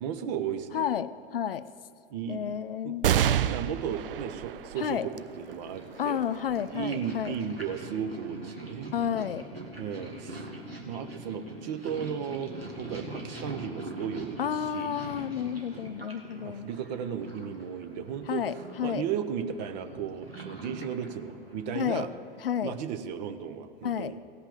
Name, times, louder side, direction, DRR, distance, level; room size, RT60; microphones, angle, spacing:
voice 1, 0.0-0.8 2.1-2.9 3.4-6.2 6.7-9.1 9.8-15.0 16.4-18.4 18.8-22.1 22.6-24.1, right 7 dB, 45° right, 9 dB, 0.9 m, -35 dB
voice 2, 0.7-1.7 2.3-3.1 4.8-5.1 6.0-7.3 8.9-9.4 14.4-16.7 18.3-19.1 21.7-22.1 22.4-22.8 23.8-24.1, left 9 dB, 75° left, 15 dB, 0.5 m, -31 dB
sound 1, 3.0-9.9 10.5-10.6 11.7-12.3, right 10 dB, 70° right, 0.5 m, -32 dB
Purr, 4.7-22.3, right 2 dB, 90° right, 1.6 m, -43 dB
17.0 x 5.8 x 7.0 m, 2.4 s
figure-of-eight pair, 90°, 29 cm